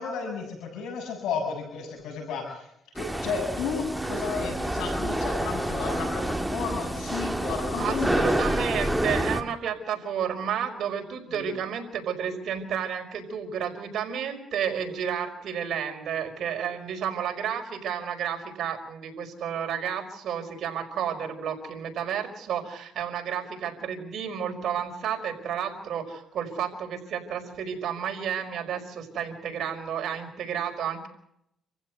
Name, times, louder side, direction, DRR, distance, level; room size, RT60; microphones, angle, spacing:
voice 1, 0.0-2.7 2.9-8.3, left 5 dB, 85° left, 2 dB, 7.4 m, -33 dB
sound 1, 3.0-9.4, right 1 dB, 5° right, 2.0 m, -28 dB
voice 2, 7.8-31.1, right 8 dB, 70° right, 3 dB, 5.2 m, -31 dB
28.0 x 15.5 x 8.0 m, 0.78 s
cardioid pair, 90°, 0 cm